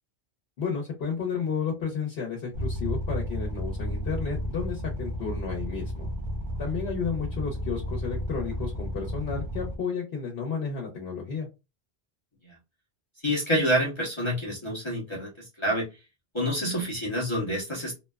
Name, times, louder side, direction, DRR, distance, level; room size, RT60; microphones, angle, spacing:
voice 1, 0.6-6.1 6.6-11.5, left 5 dB, 70° left, -1 dB, 1.0 m, -32 dB
sound 1, 2.5-9.8, left 1 dB, 60° right, 0.8 m, -32 dB
voice 2, 13.2-15.3 15.6-15.9 16.3-17.9, equal, 30° left, -5 dB, 0.7 m, -27 dB
2.8 x 2.2 x 2.2 m, 0.26 s
omnidirectional pair, 1.1 m